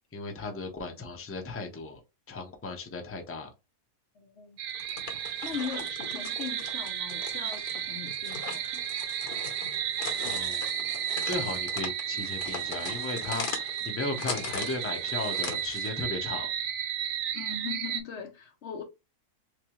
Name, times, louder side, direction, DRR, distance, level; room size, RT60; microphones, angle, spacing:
voice 1, 0.1-2.0 2.3-3.5 9.7-10.0 10.2-10.9 11.2-16.5, left 3 dB, 15° left, 0.4 m, -36 dB
voice 2, 4.2-4.6 5.4-8.8 17.3-18.8, left 7 dB, 60° left, 0.7 m, -40 dB
sound 1, 4.6-18.0, right 10 dB, 75° right, 1.0 m, -33 dB
sound 2, 4.7-16.0, left 5 dB, 90° left, 1.7 m, -40 dB
3.4 x 3.3 x 3.0 m
omnidirectional pair, 1.7 m